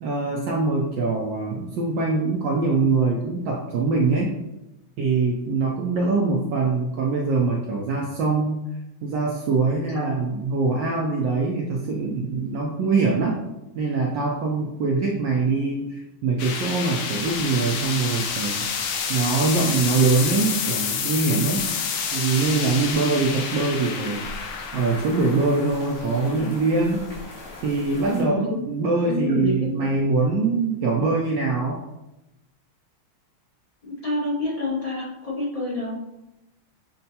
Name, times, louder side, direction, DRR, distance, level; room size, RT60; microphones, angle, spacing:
voice 1, 0.0-4.3 5.0-8.6 9.0-13.4 13.7-18.6 19.1-21.7 22.1-24.3 24.7-27.1 27.6-31.8, right 3 dB, 75° right, -1 dB, 1.1 m, -23 dB
sound 1, 16.4-27.5, left 6 dB, 80° left, 0.9 m, -29 dB
sound 2, 17.1-28.2, left 2 dB, 55° left, 1.8 m, -43 dB
voice 2, 28.1-28.6 29.0-29.8 34.0-36.0, left 1 dB, 35° left, -7 dB, 0.5 m, -27 dB
6.4 x 2.2 x 2.7 m, 0.95 s
omnidirectional pair, 2.3 m